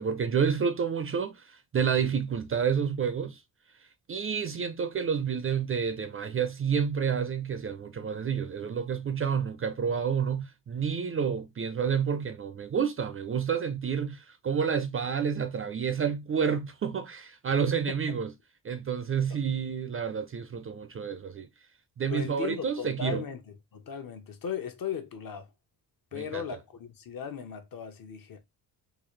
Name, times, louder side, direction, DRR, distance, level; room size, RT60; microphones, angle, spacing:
voice 1, 0.0-3.4 4.1-18.3 18.6-21.5 22.0-23.2 26.1-26.4, right 7 dB, 35° right, 0.4 m, -29 dB
voice 2, 17.9-18.2 19.3-19.4 22.0-25.5 26.1-28.4, left 7 dB, 55° left, 0.9 m, -37 dB
3.9 x 2.4 x 3.1 m
cardioid pair, 125°, 41 cm